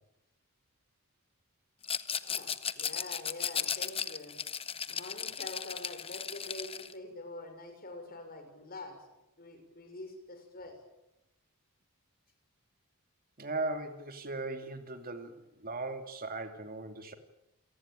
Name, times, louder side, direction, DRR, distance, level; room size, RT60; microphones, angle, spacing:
Rattle, 1.8-6.9, left 7 dB, 25° left, 1.0 m, -36 dB
voice 1, 2.2-4.4 4.9-9.0 9.4-10.7, left 2 dB, 45° left, 5 dB, 6.2 m, -45 dB
voice 2, 13.4-17.1, right 2 dB, 40° right, 6 dB, 2.7 m, -38 dB
29.0 x 18.5 x 9.1 m, 0.92 s
head